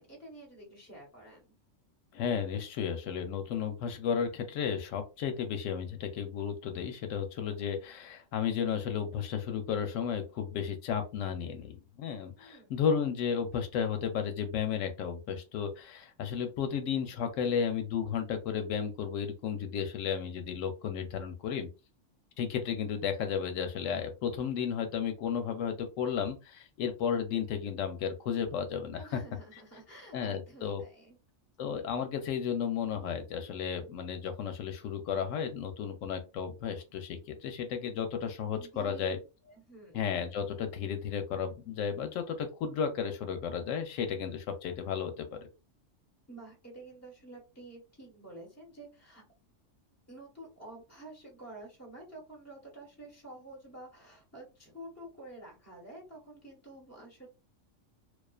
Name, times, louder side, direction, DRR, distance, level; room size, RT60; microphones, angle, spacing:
voice 1, 0.0-1.5 12.3-12.7 29.0-31.2 38.5-39.2 39.5-40.0 46.3-49.2 50.1-57.3, right 1 dB, 15° left, -2 dB, 1.0 m, -50 dB
voice 2, 2.1-21.7 22.4-29.2 30.1-30.8 31.6-39.2 39.9-45.5, left 7 dB, 85° left, 6 dB, 1.0 m, -33 dB
2.3 x 2.3 x 2.3 m, 0.29 s
omnidirectional pair, 1.3 m